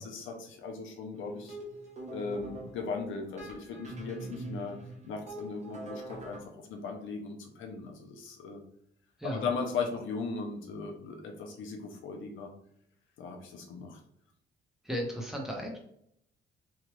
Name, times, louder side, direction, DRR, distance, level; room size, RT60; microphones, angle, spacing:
voice 1, 0.0-1.6 2.1-4.8 5.0-8.6 9.3-12.5 13.2-14.0, left 4 dB, 80° left, 3 dB, 0.7 m, -38 dB
sound 1, 1.1-6.4, right 2 dB, 35° right, 1.1 m, -44 dB
voice 2, 14.8-15.8, equal, ahead, -1 dB, 0.9 m, -35 dB
3.1 x 2.4 x 3.1 m, 0.70 s
cardioid pair, 90°, 20 cm